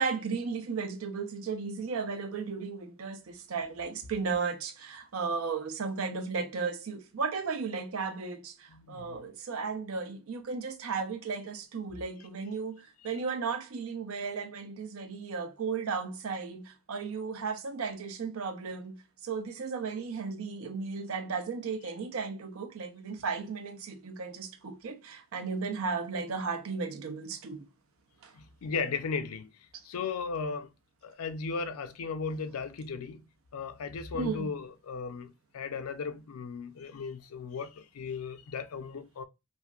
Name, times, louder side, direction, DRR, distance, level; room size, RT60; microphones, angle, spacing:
voice 1, 0.0-27.7 28.2-28.3 34.1-34.5, right 5 dB, 70° right, 0.5 m, -35 dB
voice 2, 8.7-9.3 28.3-29.5 29.8-30.7 31.0-33.2 33.5-39.2, left 5 dB, 90° left, 0.4 m, -36 dB
3.1 x 2.5 x 2.3 m
head